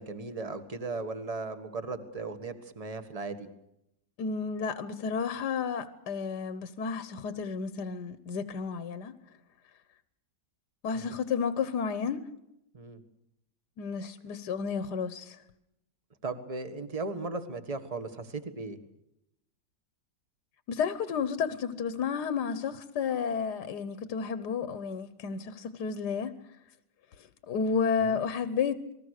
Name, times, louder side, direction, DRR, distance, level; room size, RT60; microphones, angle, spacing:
voice 1, 0.0-3.5 10.9-11.2 12.7-13.0 16.2-18.8 28.1-28.2, right 3 dB, 20° right, 1.6 m, -37 dB
voice 2, 4.2-9.2 10.8-12.2 13.8-15.4 20.7-26.3 27.2-28.9, left 6 dB, 70° left, 1.6 m, -32 dB
28.5 x 20.5 x 6.6 m
omnidirectional pair, 1.9 m